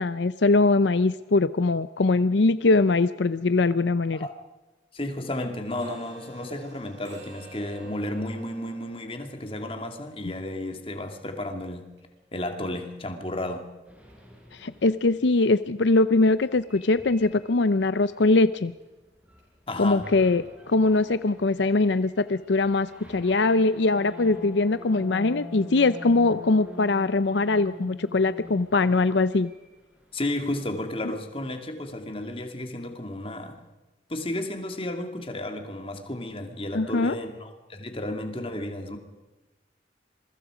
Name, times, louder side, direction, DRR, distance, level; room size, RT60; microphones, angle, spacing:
voice 1, 0.0-4.3 14.5-18.7 19.8-29.5 36.7-37.2, left 3 dB, 80° left, 14 dB, 0.6 m, -22 dB
voice 2, 4.9-11.9 12.3-13.7 19.7-20.1 30.1-33.6 34.1-39.0, left 1 dB, 30° left, 5 dB, 2.5 m, -33 dB
sound 1, 5.8-13.6 14.0-14.2 14.6-14.7 15.2-15.3 15.6-15.7 16.2-16.3 16.7-16.8 17.3-17.4 17.7-17.8 18.3-18.4 18.8-18.9 19.4-19.5 19.9-20.0 20.4-20.5 20.9-21.0 21.5-21.6 22.0-22.1 22.5-22.6 23.0-23.1 23.6-23.7, right 1 dB, 80° right, 7.7 m, -53 dB
sound 2, 13.9-15.2 16.4-18.9 19.2-19.6 20.0-30.3, left 2 dB, 10° right, 4.6 m, -45 dB
27.0 x 23.0 x 5.1 m, 1.1 s
head